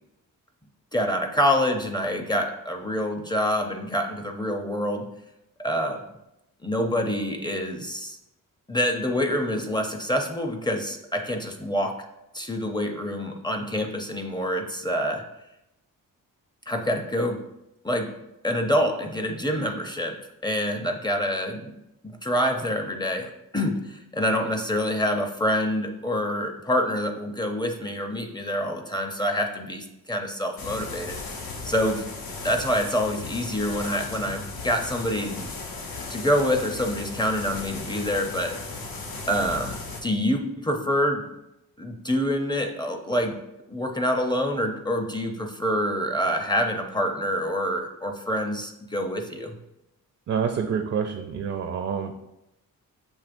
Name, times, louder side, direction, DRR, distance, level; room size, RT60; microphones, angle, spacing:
voice 1, 0.9-5.0 5.6-6.0 6.6-8.2 8.7-12.1 12.3-15.2 16.7-17.4 17.8-18.1 18.4-21.7 22.0-31.2 31.6-32.0 32.4-35.4 36.1-38.6 39.3-41.3 41.8-43.4 43.7-49.6, equal, 10° left, 4 dB, 0.5 m, -26 dB
sound 1, 30.6-40.0, left 3 dB, 75° left, 0.9 m, -36 dB
voice 2, 50.3-52.1, right 7 dB, 45° right, 5 dB, 0.4 m, -27 dB
7.2 x 2.9 x 2.5 m, 0.89 s
cardioid pair, 85°, 35 cm